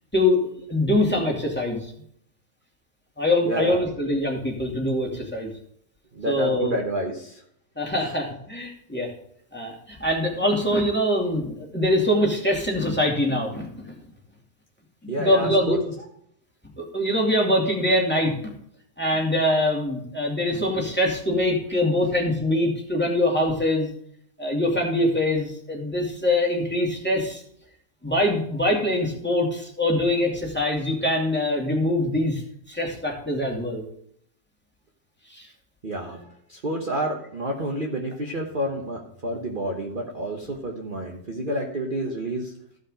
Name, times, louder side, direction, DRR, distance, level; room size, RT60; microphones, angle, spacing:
voice 1, 0.1-1.9 3.2-5.5 6.3-6.8 7.8-9.1 9.5-14.0 15.0-15.8 16.8-18.3 19.0-23.9 24.4-27.4 28.0-32.4 32.7-33.9 35.3-35.5, left 1 dB, 5° left, -1 dB, 2.4 m, -23 dB
voice 2, 3.4-3.8 6.1-7.4 15.1-15.8 35.8-42.5, right 1 dB, 30° right, 0 dB, 1.3 m, -29 dB
15.0 x 5.5 x 5.0 m, 0.67 s
omnidirectional pair, 1.9 m